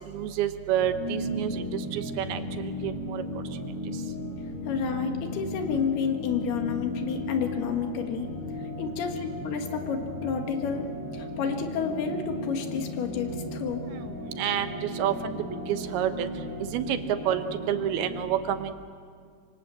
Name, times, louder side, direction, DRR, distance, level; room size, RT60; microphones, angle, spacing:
voice 1, 0.1-3.2 14.4-15.4 15.7-16.3 16.7-17.0 17.3-18.7, right 10 dB, 85° right, 9 dB, 3.1 m, -29 dB
sound 1, 0.8-18.2, left 1 dB, 20° left, 4.4 m, -36 dB
voice 2, 4.7-8.3 8.8-10.9 11.1-13.8, left 6 dB, 85° left, 5 dB, 3.7 m, -30 dB
25.5 x 24.5 x 7.7 m, 2.1 s
omnidirectional pair, 4.4 m